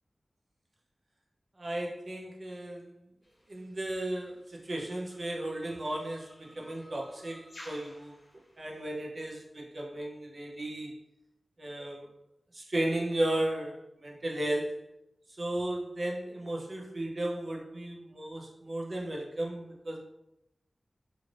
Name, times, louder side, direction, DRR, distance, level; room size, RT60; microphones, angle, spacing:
voice 1, 1.6-2.9 3.5-11.0 11.6-12.1 12.5-14.8 15.4-20.0, right 1 dB, 50° right, -1 dB, 0.6 m, -35 dB
sound 1, 3.2-8.8, left 1 dB, 55° left, 0.7 m, -55 dB
2.5 x 2.4 x 3.1 m, 0.87 s
wide cardioid pair, 95°, 0 cm